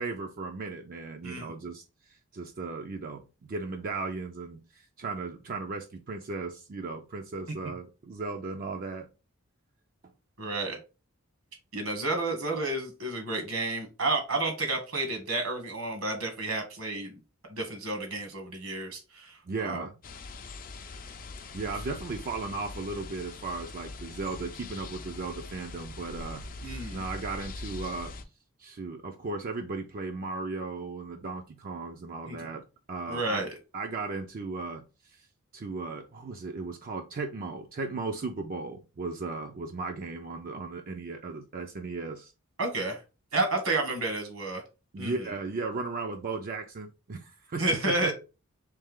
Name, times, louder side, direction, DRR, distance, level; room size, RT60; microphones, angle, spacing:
voice 1, 0.0-9.1 19.4-19.9 21.5-26.4 26.9-28.1 28.6-33.4 33.7-35.3 35.5-42.3 44.9-48.1, right 3 dB, 40° right, 0.4 m, -36 dB
voice 2, 1.2-1.6 7.6-7.7 10.4-10.8 11.7-17.1 17.5-19.8 26.6-27.0 32.3-32.5 33.1-33.5 42.6-43.0 43.3-44.6 45.0-45.1 47.6-48.1, right 2 dB, 70° right, 1.4 m, -31 dB
sound 1, 20.0-28.2, left 3 dB, 40° left, 0.5 m, -42 dB
3.3 x 3.3 x 3.5 m
head